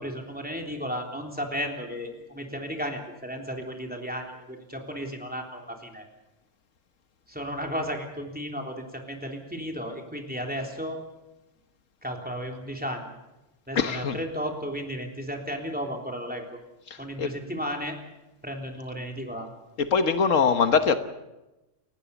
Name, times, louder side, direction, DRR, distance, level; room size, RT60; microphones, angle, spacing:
voice 1, 0.0-6.0 7.3-11.0 12.0-13.1 13.7-16.6 17.0-18.0 18.4-19.5, equal, 5° right, 2 dB, 3.4 m, -34 dB
voice 2, 13.8-14.2 17.2-17.3 19.8-21.0, left 6 dB, 80° left, 9 dB, 1.6 m, -22 dB
30.0 x 15.5 x 7.0 m, 1.0 s
omnidirectional pair, 1.3 m